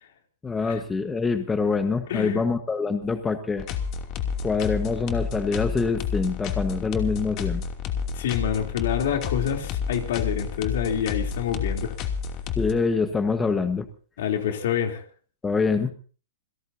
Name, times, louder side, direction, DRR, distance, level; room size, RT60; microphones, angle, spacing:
voice 1, 0.4-3.6 4.4-7.6 12.6-13.9 15.4-15.9, left 4 dB, 15° left, 1.4 m, -25 dB
voice 2, 2.1-2.4 8.1-11.9 14.2-15.0, left 9 dB, 65° left, 3.3 m, -27 dB
sound 1, 3.6-12.7, left 6 dB, 40° left, 2.8 m, -30 dB
28.0 x 17.5 x 2.8 m
hypercardioid pair, 130°, 0 cm